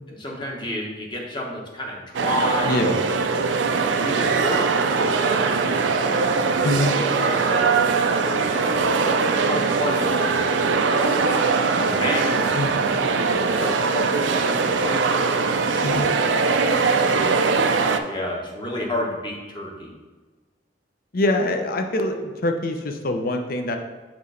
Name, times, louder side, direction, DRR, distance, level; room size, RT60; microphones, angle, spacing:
voice 1, 0.1-3.4 3.8-8.9 9.5-11.3 11.8-17.2 18.1-19.9, left 1 dB, 25° left, -1 dB, 1.1 m, -31 dB
sound 1, 2.1-18.0, right 4 dB, 80° right, 0.4 m, -21 dB
voice 2, 2.6-3.0 6.6-6.9 12.6-12.8 15.8-16.1 21.1-23.8, left 1 dB, 55° left, 5 dB, 0.6 m, -24 dB
6.1 x 3.1 x 5.6 m, 1.3 s
head